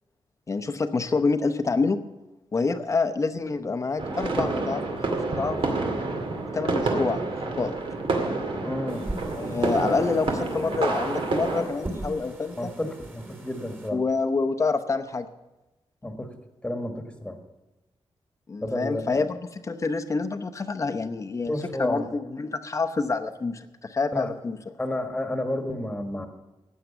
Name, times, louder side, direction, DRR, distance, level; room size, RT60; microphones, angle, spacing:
voice 1, 0.5-2.0 2.5-5.6 6.5-7.2 7.6-7.7 9.3-12.7 13.9-15.3 18.5-21.5 21.8-24.6, left 4 dB, 30° left, 9 dB, 0.8 m, -27 dB
sound 1, 4.0-11.6, right 3 dB, 60° right, 2.4 m, -28 dB
voice 2, 8.6-9.1 12.6-14.0 16.0-16.3 16.6-17.4 18.6-19.3 21.5-22.1 24.1-24.3 24.8-26.3, left 1 dB, 10° left, 5 dB, 1.6 m, -31 dB
sound 2, 8.9-13.9, right 1 dB, 20° right, 2.4 m, -40 dB
15.0 x 9.3 x 6.9 m, 1.0 s
wide cardioid pair, 170°, 10 cm